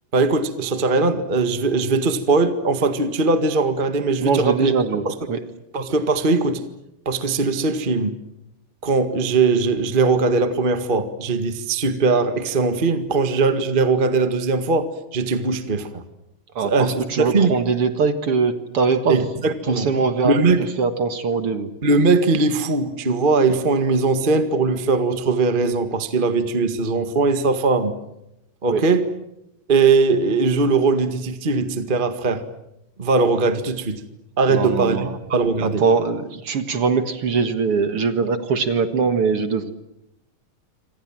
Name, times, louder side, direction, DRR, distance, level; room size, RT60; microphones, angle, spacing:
voice 1, 0.1-4.7 5.0-5.1 5.7-6.6 7.0-8.1 8.8-16.0 16.6-17.5 19.1-19.9 20.2-20.6 21.8-27.9 28.6-29.0 29.7-32.4 33.0-34.0 34.4-35.8, right 3 dB, 25° right, 10 dB, 1.1 m, -20 dB
voice 2, 4.2-5.4 16.5-19.3 19.6-21.7 28.6-28.9 34.5-35.2 35.6-39.7, right 5 dB, 50° right, 10 dB, 2.1 m, -22 dB
27.5 x 25.5 x 7.6 m, 0.86 s
omnidirectional pair, 3.9 m